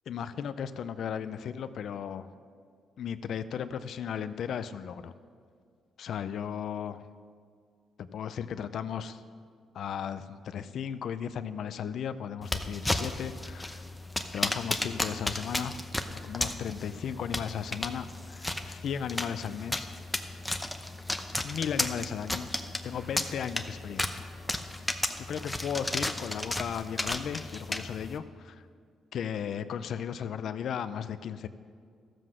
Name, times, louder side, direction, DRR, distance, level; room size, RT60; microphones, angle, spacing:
voice 1, 0.1-2.3 3.0-5.1 6.0-7.1 8.0-9.2 9.7-13.8 14.3-15.9 16.2-19.9 21.4-22.5 22.8-24.3 25.2-28.7 29.1-31.5, left 8 dB, 65° left, 13 dB, 0.5 m, -35 dB
sound 1, 12.4-28.2, left 1 dB, 10° left, 0.7 m, -34 dB
13.5 x 7.6 x 6.3 m, 2.1 s
cardioid pair, 90°, 0 cm